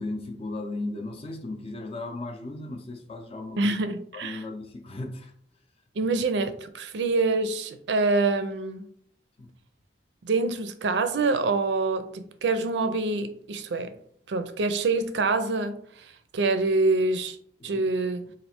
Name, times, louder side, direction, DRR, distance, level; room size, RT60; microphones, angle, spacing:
voice 1, 0.0-3.8 4.1-5.3 6.0-6.2 9.4-9.5 17.6-17.8 18.3-18.4, left 2 dB, 35° left, 0.5 m, -36 dB
voice 2, 3.6-4.4 6.0-8.9 10.2-13.9 14.3-17.4 17.6-18.2, right 3 dB, 75° right, 0.5 m, -26 dB
3.2 x 2.5 x 4.3 m
head